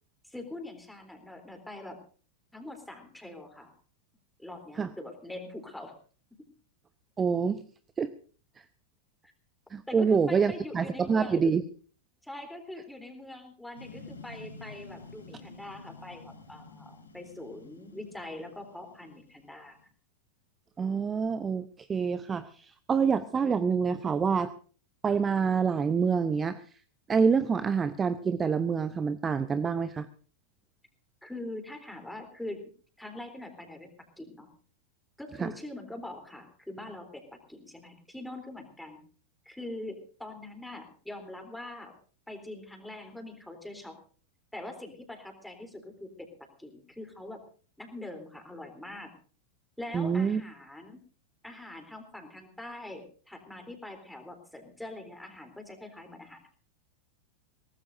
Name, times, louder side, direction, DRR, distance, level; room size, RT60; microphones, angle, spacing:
voice 1, 0.2-2.0 2.5-3.7 4.4-6.0 6.3-6.5 9.2-9.3 9.9-11.4 12.2-19.8 31.2-32.7 33.0-34.5 35.2-39.0 39.5-41.9 42.3-44.0 44.5-47.4 47.8-49.1 49.8-51.0 51.4-56.5, left 1 dB, 5° left, 5 dB, 3.6 m, -43 dB
voice 2, 7.2-7.6 8.0-8.1 9.7-11.6 20.8-24.5 25.0-26.6 27.1-30.1 35.4-35.5 49.9-50.4, right 6 dB, 20° right, 14 dB, 0.7 m, -27 dB
sound 1, 13.7-19.8, left 3 dB, 75° left, 5.0 m, -49 dB
22.5 x 18.5 x 2.7 m, 0.40 s
figure-of-eight pair, 90°, 0 cm